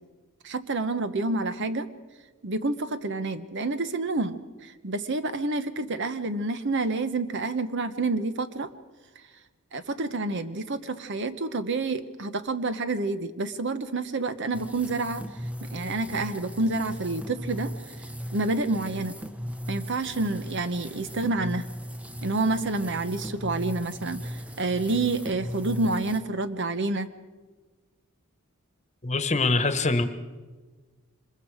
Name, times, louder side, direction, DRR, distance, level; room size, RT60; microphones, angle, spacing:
voice 1, 0.4-1.9 2.4-8.7 9.7-15.2 15.7-17.7 18.3-19.1 19.7-21.6 22.2-27.1, right 2 dB, 55° right, 11 dB, 1.0 m, -28 dB
sound 1, 14.5-26.2, equal, 5° right, 0.9 m, -37 dB
voice 2, 29.0-30.1, left 3 dB, 30° left, 9 dB, 1.3 m, -23 dB
25.5 x 21.5 x 4.9 m, 1.3 s
head